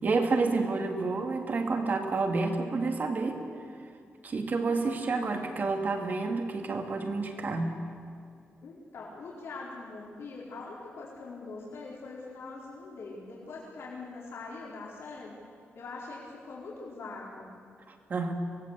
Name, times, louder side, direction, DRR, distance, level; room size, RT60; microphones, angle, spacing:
voice 1, 0.0-3.4 4.2-7.8 18.1-18.3, right 3 dB, 45° right, 4 dB, 2.3 m, -29 dB
voice 2, 8.6-15.4 15.7-17.5, left 3 dB, 75° left, -5 dB, 4.4 m, -43 dB
23.5 x 18.0 x 8.2 m, 2.3 s
wide cardioid pair, 165°, 4 cm